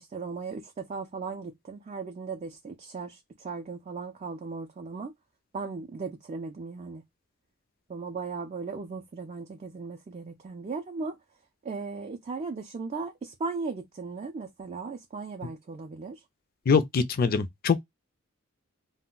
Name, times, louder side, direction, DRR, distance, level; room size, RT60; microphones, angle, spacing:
voice 1, 0.0-5.1 5.5-7.0 7.9-11.2 11.6-16.2, right 4 dB, 35° right, 0.3 m, -37 dB
voice 2, 16.7-17.8, left 5 dB, 45° left, 0.4 m, -23 dB
2.2 x 2.1 x 3.6 m
head